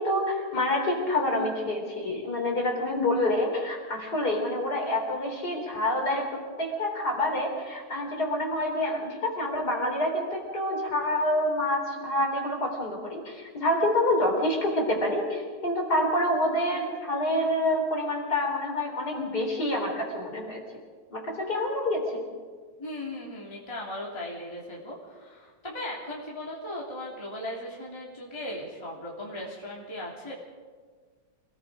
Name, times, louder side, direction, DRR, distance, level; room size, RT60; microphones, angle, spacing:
voice 1, 0.0-20.6 21.1-22.2, left 1 dB, 30° left, 1 dB, 4.2 m, -27 dB
voice 2, 22.8-30.3, left 1 dB, 10° left, -4 dB, 2.8 m, -37 dB
27.5 x 19.0 x 5.1 m, 1.5 s
omnidirectional pair, 3.4 m